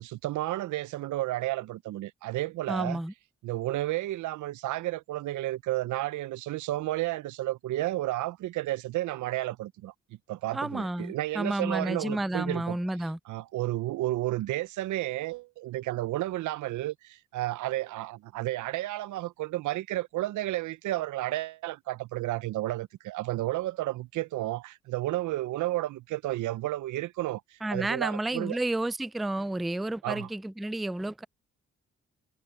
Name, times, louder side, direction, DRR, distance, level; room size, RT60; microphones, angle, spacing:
voice 1, 0.0-3.0 3.4-9.9 10.3-12.8 13.3-27.4 27.7-28.6 30.0-30.3, right 16 dB, 85° right, 0.6 m, -32 dB
voice 2, 2.7-3.1 10.5-13.2 27.6-31.2, right 1 dB, ahead, 0.3 m, -31 dB
supercardioid pair, 55°, 29 cm